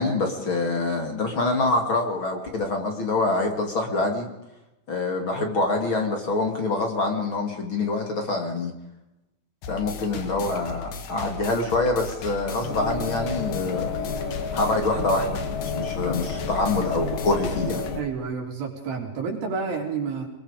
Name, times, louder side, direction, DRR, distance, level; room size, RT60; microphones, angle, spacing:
voice 1, 0.0-4.3 4.9-8.7 9.7-13.9 14.5-17.8, left 2 dB, 35° left, 3 dB, 3.0 m, -25 dB
sound 1, 9.6-18.0, left 5 dB, 80° left, 3.6 m, -37 dB
sound 2, 12.6-18.0, left 5 dB, 65° left, 3.6 m, -30 dB
voice 2, 18.0-20.3, right 5 dB, 80° right, 1 dB, 5.6 m, -29 dB
25.5 x 22.0 x 5.1 m, 0.93 s
omnidirectional pair, 4.1 m